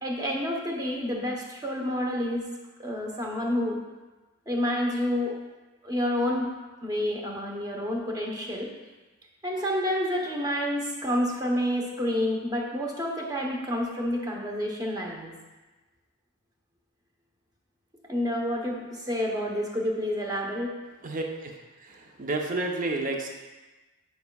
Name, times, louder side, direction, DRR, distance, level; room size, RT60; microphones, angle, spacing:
voice 1, 0.0-2.4 2.8-3.8 4.5-5.3 5.8-6.5 6.8-8.7 9.4-15.3 18.1-20.7, equal, 20° right, -1 dB, 0.9 m, -29 dB
voice 2, 21.0-21.6 21.9-23.3, right 2 dB, 40° right, 2 dB, 0.7 m, -30 dB
9.6 x 5.3 x 2.3 m, 1.2 s
head